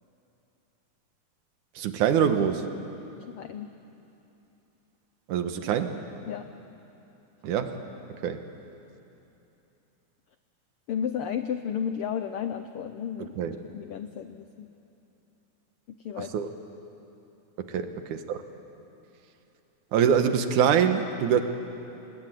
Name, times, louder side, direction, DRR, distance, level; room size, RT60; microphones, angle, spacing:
voice 1, 1.8-2.7 5.3-6.0 7.4-7.8 8.2-8.4 13.4-13.6 16.2-16.5 17.6-18.4 19.9-21.4, right 8 dB, 85° right, 8 dB, 2.7 m, -24 dB
voice 2, 3.2-3.7 6.3-6.5 10.9-13.3 13.7-14.7 15.9-16.3, left 8 dB, 80° left, 9 dB, 1.2 m, -33 dB
27.0 x 21.0 x 9.2 m, 2.9 s
omnidirectional pair, 3.5 m